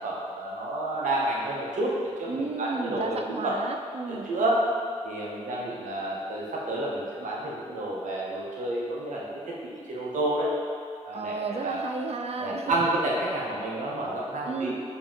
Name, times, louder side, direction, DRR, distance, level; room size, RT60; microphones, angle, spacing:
voice 1, 0.0-3.2 3.4-3.5 4.1-4.7 5.0-10.5 11.0-11.8 12.4-14.7, right 1 dB, 85° right, -4 dB, 0.8 m, -30 dB
voice 2, 2.3-4.3 11.1-12.7 14.4-14.7, right 4 dB, 55° right, 5 dB, 0.4 m, -33 dB
4.8 x 2.8 x 3.6 m, 2.1 s
cardioid pair, 50°, 13 cm